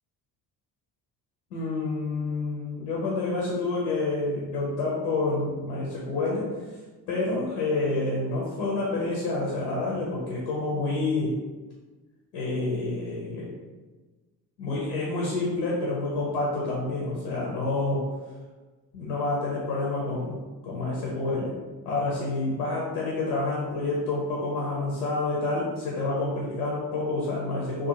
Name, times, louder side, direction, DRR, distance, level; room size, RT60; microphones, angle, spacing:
voice 1, 1.5-6.4 7.1-11.3 12.3-13.5 14.6-18.0 18.9-21.5 21.8-27.9, left 2 dB, 85° left, -4 dB, 0.7 m, -28 dB
2.5 x 2.4 x 2.6 m, 1.3 s
hypercardioid pair, 50°, 47 cm